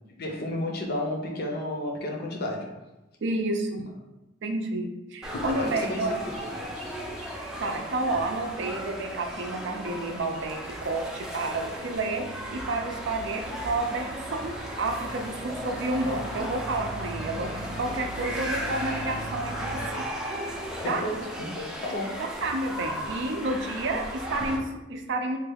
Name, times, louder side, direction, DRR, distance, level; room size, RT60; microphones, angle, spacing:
voice 1, 0.1-2.7 5.3-6.5 20.8-22.2, left 1 dB, 55° left, 1 dB, 0.6 m, -32 dB
voice 2, 3.2-3.8 4.4-6.2 7.6-12.2 12.5-20.1 20.9-21.0 22.2-25.4, right 2 dB, 65° right, 4 dB, 0.4 m, -30 dB
sound 1, 5.2-24.6, equal, 5° right, 0.4 m, -36 dB
sound 2, 5.8-19.9, right 1 dB, 35° right, 0.7 m, -42 dB
3.3 x 2.3 x 3.4 m, 0.99 s
head